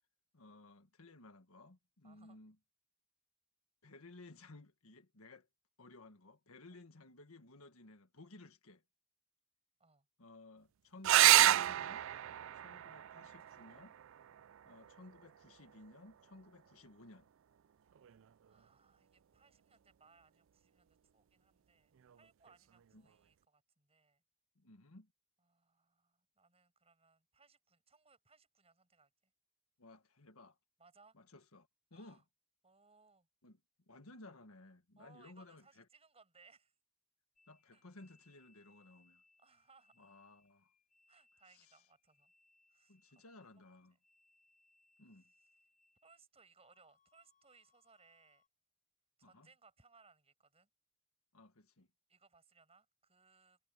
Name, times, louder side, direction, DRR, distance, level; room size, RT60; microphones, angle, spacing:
voice 1, 0.3-2.6 3.8-5.5 5.8-8.8 10.2-12.1 12.5-13.9 14.6-17.3 22.9-23.1 24.5-25.1 29.8-30.6 31.1-32.2 33.4-33.6 33.9-35.9 37.5-39.2 40.0-40.7 41.5-41.8 42.9-44.0 45.0-45.3 49.2-49.5 51.3-51.9, left 2 dB, 90° left, 1.6 m, -57 dB
voice 2, 2.0-2.4 6.7-6.8 9.8-10.1 14.3-14.6 18.5-24.2 25.5-29.1 30.8-31.2 31.9-32.2 32.6-33.3 35.0-36.7 37.7-37.8 39.4-40.1 41.1-42.3 42.7-43.2 46.0-48.4 49.2-50.7 52.1-53.6, right 4 dB, 30° right, 6.9 m, -67 dB
sound 1, 11.0-16.1 18.0-18.6 22.0-22.2 22.5-22.6, right 14 dB, 65° right, 0.4 m, -31 dB
sound 2, 37.4-46.2 46.6-48.5, left 3 dB, 40° left, 4.9 m, -73 dB
head